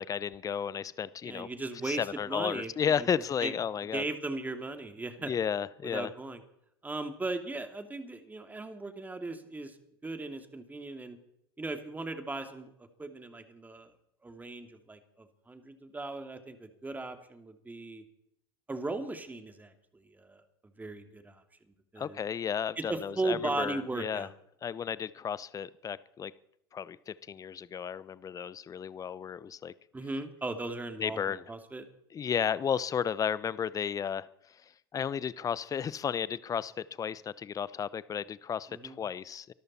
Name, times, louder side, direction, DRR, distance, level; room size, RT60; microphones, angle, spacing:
voice 1, 0.0-1.5 1.8-4.0 5.2-6.1 22.0-24.3 24.6-26.3 26.7-29.7 31.0-31.4 32.1-34.3 34.9-39.5, left 8 dB, 25° left, 19 dB, 0.8 m, -33 dB
voice 2, 1.2-3.1 3.4-3.5 3.9-5.3 5.8-6.4 6.8-9.7 10.0-11.2 11.6-12.7 13.0-13.9 14.2-18.0 18.7-21.4 21.9-22.2 22.8-24.3 29.9-31.8 38.7-38.9, right 2 dB, 15° right, 7 dB, 2.6 m, -37 dB
24.5 x 13.5 x 4.3 m, 0.75 s
hypercardioid pair, 85°, 13 cm